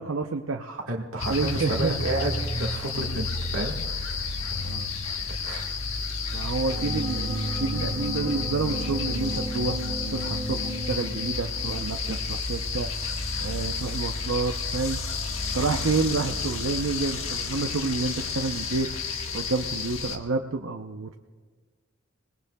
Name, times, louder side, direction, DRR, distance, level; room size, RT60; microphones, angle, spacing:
voice 1, 0.0-0.7 1.3-1.9 4.6-4.9 6.3-9.8 10.1-15.0 15.5-21.1, right 4 dB, 70° right, 3 dB, 0.7 m, -29 dB
voice 2, 0.6-3.3 3.5-4.3 5.4-5.6 12.0-12.2, right 2 dB, 85° right, -1 dB, 1.7 m, -31 dB
sound 1, 1.2-20.2, left 4 dB, 70° left, 1.5 m, -31 dB
sound 2, 6.7-11.8, right 1 dB, 15° right, 4.1 m, -33 dB
27.5 x 19.5 x 2.3 m, 1.5 s
head